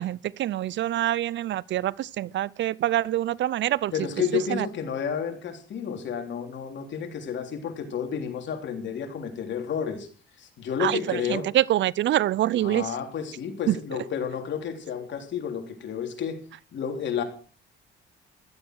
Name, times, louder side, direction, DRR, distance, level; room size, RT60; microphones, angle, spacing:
voice 1, 0.0-4.1 4.3-4.7 10.8-12.9 13.7-13.8, right 13 dB, 65° right, 0.6 m, -25 dB
voice 2, 3.9-10.1 10.4-11.5 12.6-16.4 16.7-17.2, left 7 dB, 65° left, 3.5 m, -31 dB
15.5 x 12.5 x 4.7 m
cardioid pair, 90°, 20 cm